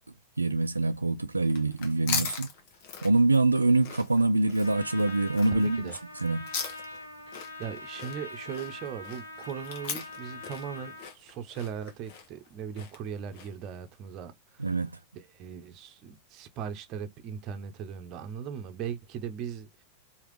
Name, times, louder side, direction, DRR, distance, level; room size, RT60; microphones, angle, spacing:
voice 1, 0.4-2.5 3.0-5.9 6.2-6.5 14.6-14.9, right 2 dB, 80° right, 0.4 m, -25 dB
sound 1, 1.4-13.7, left 6 dB, 50° left, 1.2 m, -39 dB
Trumpet, 4.6-11.1, left 2 dB, 85° left, 1.2 m, -43 dB
voice 2, 5.5-5.9 7.6-14.7 15.1-19.8, right 8 dB, 35° right, 0.8 m, -39 dB
4.8 x 2.9 x 3.2 m
figure-of-eight pair, 90°, 0 cm